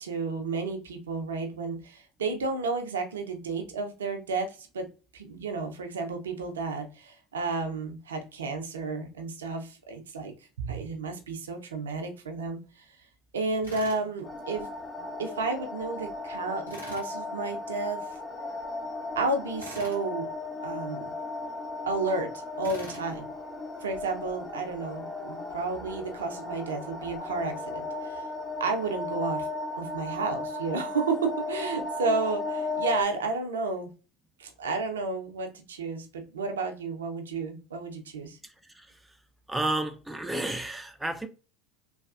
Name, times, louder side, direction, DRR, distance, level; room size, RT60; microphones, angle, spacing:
voice 1, 0.0-4.9 5.1-12.8 13.3-14.7 15.2-18.0 19.2-20.3 20.6-21.1 21.9-23.3 23.8-28.3 28.6-29.5 29.7-33.9 34.4-38.4, right 3 dB, 75° right, 0.4 m, -32 dB
Tools, 13.6-14.0 16.7-17.1 19.6-20.0 22.6-23.1, right 1 dB, 90° left, 1.0 m, -44 dB
sound 1, 14.2-33.0, left 2 dB, 15° left, 0.7 m, -36 dB
voice 2, 38.4-39.0 39.5-41.3, right 2 dB, 10° right, 0.4 m, -32 dB
3.3 x 2.2 x 2.4 m
figure-of-eight pair, 70°, 0 cm